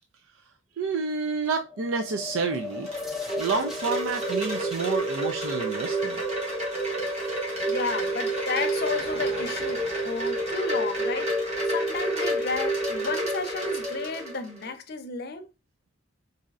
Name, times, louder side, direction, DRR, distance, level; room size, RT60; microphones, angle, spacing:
voice 1, 0.8-2.9 3.4-6.2, right 4 dB, 85° right, 0.5 m, -29 dB
sound 1, 1.6-4.8, left 4 dB, ahead, 0.4 m, -38 dB
Wind chime, 2.4-14.7, right 1 dB, 30° right, 1.4 m, -29 dB
voice 2, 7.1-15.5, left 4 dB, 50° left, 0.6 m, -33 dB
sound 2, 8.5-12.6, equal, 50° right, 1.2 m, -47 dB
4.1 x 2.7 x 2.3 m
head